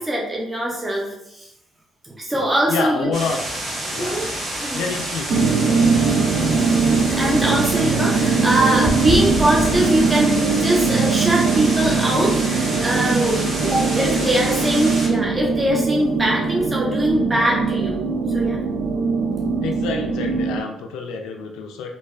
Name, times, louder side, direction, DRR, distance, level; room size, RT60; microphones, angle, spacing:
voice 1, 0.0-1.5 2.0-3.1 4.0-4.3 4.6-4.8 7.1-18.0 18.3-18.6, right 1 dB, 20° right, -2 dB, 0.5 m, -22 dB
voice 2, 2.7-3.4 3.9-4.2 4.7-5.7 19.6-21.9, left 4 dB, 85° left, 3 dB, 0.3 m, -28 dB
sound 1, 3.1-15.1, right 1 dB, 45° right, 1.3 m, -29 dB
sound 2, 5.3-20.6, right 4 dB, 75° right, 0.3 m, -21 dB
sound 3, 8.8-11.9 12.1-12.3 12.9-13.0 17.5-17.6, left 2 dB, 30° left, 0.5 m, -29 dB
3.1 x 2.2 x 2.3 m, 0.81 s
supercardioid pair, 70°, 0 cm